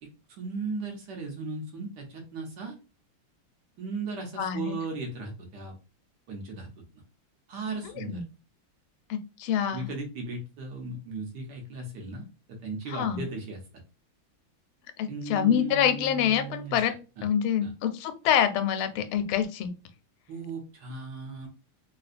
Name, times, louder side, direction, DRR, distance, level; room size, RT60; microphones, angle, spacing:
voice 1, 0.0-2.8 3.8-5.7 6.3-6.7 7.5-8.2 9.7-13.6 15.1-16.8 17.2-17.3 17.6-17.7 20.3-21.5, right 3 dB, 65° right, 2 dB, 1.3 m, -37 dB
voice 2, 4.4-4.8 8.0-8.2 9.1-9.9 12.9-13.2 15.0-16.9 17.2-19.7, left 9 dB, 85° left, 8 dB, 1.4 m, -26 dB
3.3 x 2.7 x 2.4 m, 0.31 s
omnidirectional pair, 2.3 m